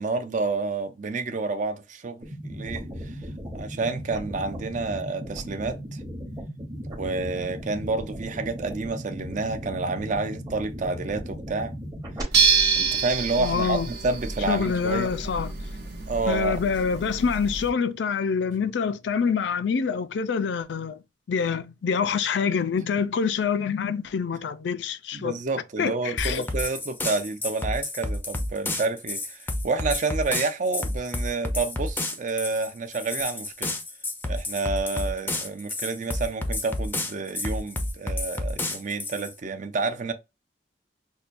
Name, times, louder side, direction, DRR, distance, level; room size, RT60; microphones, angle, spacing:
voice 1, 0.0-3.2 3.5-6.0 6.9-11.7 12.8-15.1 16.1-16.6 25.1-33.7 34.3-40.1, right 3 dB, 45° right, 0.5 m, -29 dB
sound 1, 2.2-12.2, equal, 20° right, 0.8 m, -37 dB
sound 2, 12.3-17.7, right 5 dB, 70° right, 1.0 m, -27 dB
voice 2, 13.4-13.9 14.5-15.5 16.3-21.0 21.3-25.4 25.8-26.5, left 6 dB, 80° left, 0.4 m, -26 dB
sound 3, 26.2-39.3, left 1 dB, 10° left, 0.5 m, -30 dB
5.5 x 2.2 x 2.5 m
head